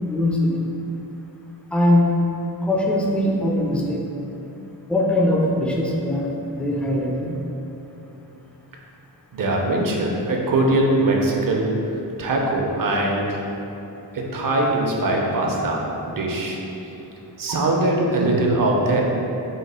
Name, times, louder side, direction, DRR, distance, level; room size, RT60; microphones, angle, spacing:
voice 1, 0.1-0.5 1.7-2.1 2.6-4.0 4.9-7.3, left 1 dB, 5° left, -2 dB, 0.3 m, -21 dB
voice 2, 9.3-11.7 12.2-13.4 14.1-16.6 17.4-19.0, right 2 dB, 50° right, -1 dB, 0.6 m, -21 dB
3.2 x 2.1 x 4.1 m, 3.0 s
cardioid pair, 60°, 44 cm